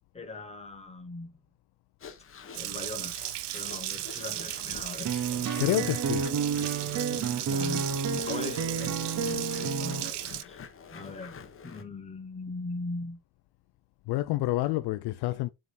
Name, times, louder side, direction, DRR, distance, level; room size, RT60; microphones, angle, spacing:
voice 1, 0.1-1.3 2.5-3.1 3.5-5.1 7.4-10.7 10.9-11.3 11.6-13.2, left 3 dB, 15° left, 1.8 m, -40 dB
sound 1, 2.0-11.8, left 6 dB, 30° left, 1.2 m, -47 dB
Water tap faucet, 2.5-10.4, right 15 dB, 70° right, 0.8 m, -36 dB
sound 2, 5.0-10.1, right 5 dB, 40° right, 1.1 m, -30 dB
voice 2, 5.6-6.2 7.5-7.7 14.1-15.5, left 17 dB, 65° left, 0.5 m, -28 dB
7.8 x 3.7 x 4.2 m
cardioid pair, 140°, 43 cm